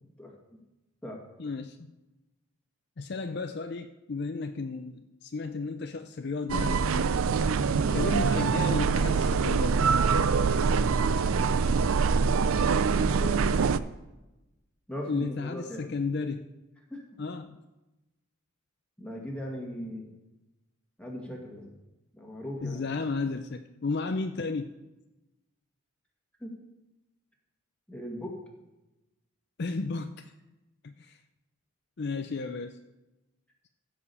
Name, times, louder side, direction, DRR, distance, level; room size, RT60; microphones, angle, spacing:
voice 1, 0.2-0.6 1.0-1.2 7.7-8.0 12.9-13.5 14.9-15.9 16.9-17.0 19.0-20.1 21.0-21.7 22.1-22.8 26.4-26.5 27.9-28.4, equal, 5° left, -1 dB, 2.0 m, -39 dB
voice 2, 1.4-1.8 3.0-7.1 7.9-9.8 15.0-16.5 17.2-17.6 22.6-24.7 29.6-30.3 30.8-31.2 32.0-32.8, left 3 dB, 50° left, 7 dB, 0.5 m, -33 dB
sound 1, 6.5-13.8, right 5 dB, 75° right, 0.4 m, -24 dB
15.0 x 5.0 x 6.9 m, 1.0 s
head